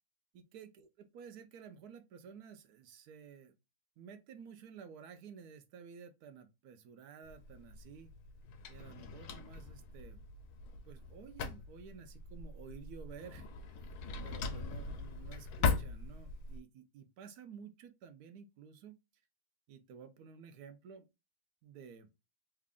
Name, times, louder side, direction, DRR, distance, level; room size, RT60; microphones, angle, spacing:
voice 1, 0.3-3.6 4.0-8.1 8.7-10.2 10.8-13.8 14.2-19.0 19.7-21.1 21.6-22.1, right 7 dB, 80° right, 1.1 m, -53 dB
Drawer open or close, 7.2-16.6, left 5 dB, 85° left, 1.2 m, -40 dB
3.3 x 2.4 x 3.5 m
omnidirectional pair, 1.6 m